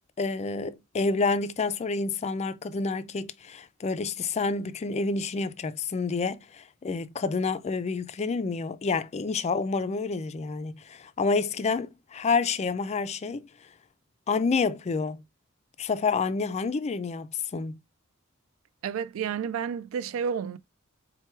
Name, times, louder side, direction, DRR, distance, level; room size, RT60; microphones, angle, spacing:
voice 1, 0.2-13.5 14.3-15.2 15.8-17.7, left 4 dB, 30° left, 0.4 m, -28 dB
voice 2, 18.8-20.6, right 7 dB, 75° right, 0.3 m, -30 dB
4.4 x 2.2 x 4.3 m
head